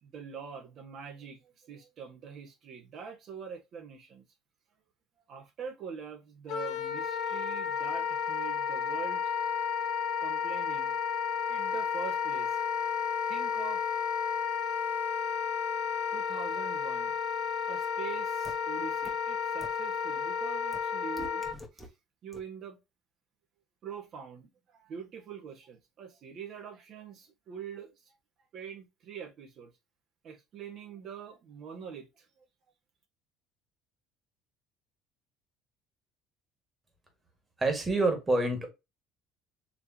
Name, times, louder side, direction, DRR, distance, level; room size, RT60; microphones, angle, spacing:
voice 1, 0.0-4.2 5.3-9.3 10.2-10.9 11.3-12.7 13.3-13.8 16.1-17.1 17.7-21.4 21.7-21.9 22.2-22.8 23.8-28.1 28.5-29.7 30.2-32.4, right 7 dB, 50° right, 1.6 m, -44 dB
Wind instrument woodwind instrument, 6.5-21.6, left 7 dB, 70° left, 1.3 m, -32 dB
sound 1, 18.4-18.5 19.0-19.1 19.6-19.7 20.7-20.8 21.2-21.9 22.3-22.4, left 1 dB, ahead, 1.2 m, -45 dB
voice 2, 37.6-38.7, right 2 dB, 20° right, 2.0 m, -27 dB
4.9 x 3.3 x 2.9 m
cardioid pair, 105°, 0 cm